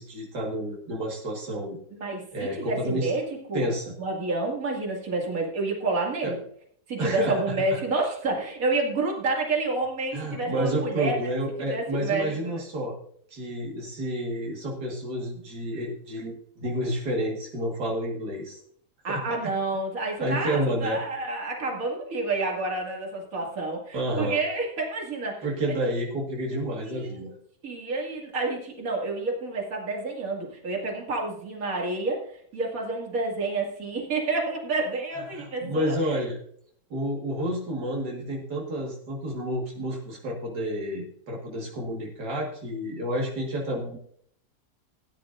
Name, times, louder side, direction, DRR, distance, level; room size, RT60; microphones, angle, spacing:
voice 1, 0.0-1.8 2.3-3.1 3.5-3.9 6.2-6.3 7.0-7.8 10.1-13.0 13.3-18.6 19.1-19.2 20.2-21.0 23.9-24.4 25.4-27.4 35.3-36.4 36.9-44.0, equal, 80° right, -2 dB, 2.3 m, -30 dB
voice 2, 1.9-3.7 4.0-6.4 6.9-11.3 11.6-12.6 19.0-25.7 26.8-27.3 27.6-36.2, right 3 dB, 55° right, -1 dB, 2.6 m, -29 dB
17.5 x 10.0 x 2.5 m, 0.64 s
omnidirectional pair, 1.7 m